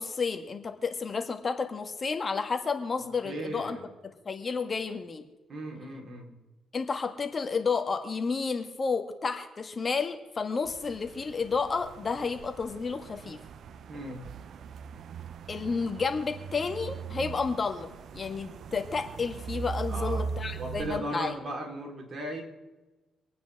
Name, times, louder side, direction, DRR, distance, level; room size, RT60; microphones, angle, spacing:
voice 1, 0.0-3.8 4.0-5.2 6.7-13.4 15.5-17.9 18.1-21.3, left 5 dB, 35° left, 6 dB, 1.5 m, -31 dB
voice 2, 3.2-3.8 5.5-6.3 13.9-14.2 19.9-20.3 20.6-22.4, right 1 dB, 45° right, 0 dB, 4.0 m, -36 dB
sound 1, 10.6-21.0, right 6 dB, 65° right, 0.6 m, -40 dB
26.0 x 9.4 x 3.6 m, 1.1 s
cardioid pair, 90°, 0 cm